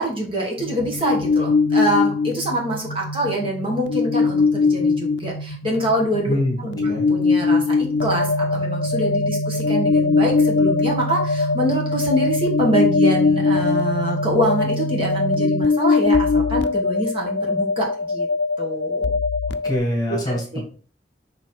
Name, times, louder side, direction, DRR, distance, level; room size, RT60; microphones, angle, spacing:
voice 1, 0.0-18.3 18.6-19.1 20.1-20.6, right 1 dB, 30° right, -1 dB, 1.7 m, -25 dB
sound 1, 0.6-19.8, left 3 dB, 80° left, 0.5 m, -21 dB
voice 2, 19.6-20.6, left 1 dB, 25° left, 0 dB, 1.9 m, -24 dB
7.1 x 3.4 x 4.6 m, 0.42 s
head